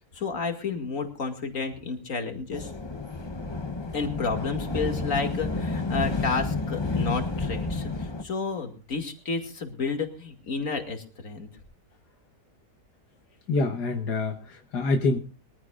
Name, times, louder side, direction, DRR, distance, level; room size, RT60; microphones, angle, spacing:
voice 1, 0.1-2.7 3.9-11.5, left 4 dB, 55° left, 4 dB, 2.7 m, -31 dB
sound 1, 2.5-8.2, left 3 dB, 25° left, 0.6 m, -30 dB
voice 2, 13.5-15.2, left 3 dB, 80° left, 4 dB, 1.8 m, -26 dB
23.0 x 14.5 x 2.5 m, 0.35 s
omnidirectional pair, 1.7 m